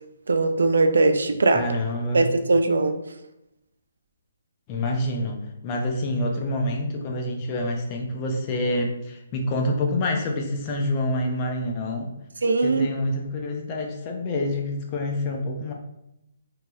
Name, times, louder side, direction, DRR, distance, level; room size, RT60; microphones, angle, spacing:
voice 1, 0.3-1.6 2.1-3.0 12.4-12.9, right 3 dB, 85° right, 7 dB, 0.3 m, -20 dB
voice 2, 1.5-2.3 4.7-5.4 5.6-12.1 12.6-15.7, left 1 dB, 25° left, 2 dB, 0.4 m, -27 dB
3.0 x 2.7 x 2.3 m, 0.85 s
hypercardioid pair, 160°, 0 cm